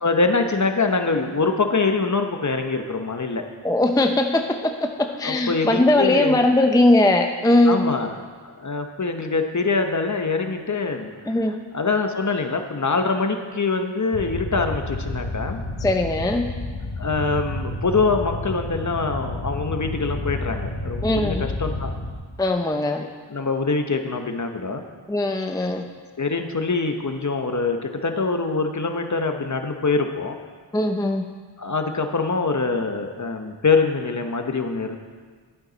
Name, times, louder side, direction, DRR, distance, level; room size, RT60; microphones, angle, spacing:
voice 1, 0.0-3.4 5.2-6.4 7.6-8.1 8.4-11.4 11.7-15.6 17.0-21.9 23.3-24.8 26.2-30.4 31.6-35.0, left 4 dB, 40° left, 5 dB, 1.0 m, -24 dB
voice 2, 3.6-7.8 11.3-11.5 15.8-16.5 21.0-21.5 22.4-23.1 25.1-25.9 30.7-31.3, left 1 dB, 10° left, 4 dB, 0.6 m, -20 dB
sound 1, 14.1-22.1, left 2 dB, 65° left, 1.8 m, -30 dB
11.5 x 9.8 x 4.0 m, 1.5 s
wide cardioid pair, 75°, 46 cm